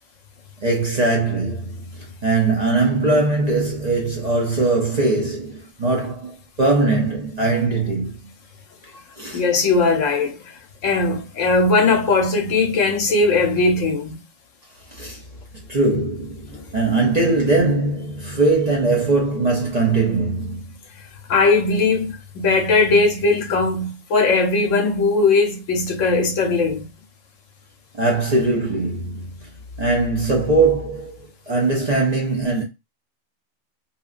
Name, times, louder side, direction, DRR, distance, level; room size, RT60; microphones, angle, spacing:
voice 1, 0.6-8.2 9.2-9.4 14.9-15.2 15.7-20.7 27.9-29.3 29.8-31.1 31.5-32.6, right 3 dB, 45° right, 0.6 m, -21 dB
voice 2, 9.3-10.4 10.8-14.2 21.3-26.9, left 3 dB, 80° left, 1.0 m, -19 dB
2.8 x 2.2 x 2.4 m
omnidirectional pair, 1.3 m